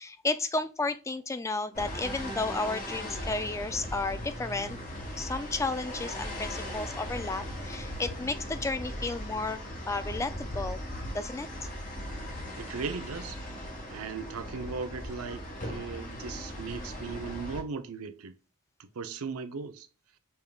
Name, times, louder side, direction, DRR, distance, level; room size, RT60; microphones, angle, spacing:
voice 1, 0.0-4.8 5.2-10.8 11.1-11.5, left 3 dB, 15° left, 0.3 m, -33 dB
sound 1, 1.7-17.6, equal, 40° left, 1.3 m, -38 dB
voice 2, 12.6-18.3 18.8-19.9, right 5 dB, 70° right, 0.6 m, -38 dB
5.5 x 3.5 x 2.2 m
head